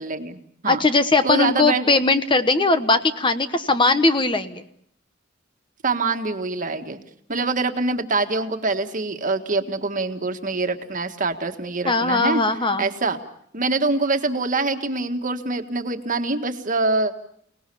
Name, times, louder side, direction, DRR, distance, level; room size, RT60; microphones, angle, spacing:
voice 1, 0.0-0.8 1.2-1.9 5.8-7.0 7.3-12.4 12.8-13.2 13.5-17.1, right 3 dB, 40° right, 6 dB, 1.7 m, -24 dB
voice 2, 0.7-4.6 11.8-12.9, left 3 dB, 25° left, 10 dB, 1.1 m, -19 dB
29.5 x 19.0 x 6.9 m, 0.69 s
head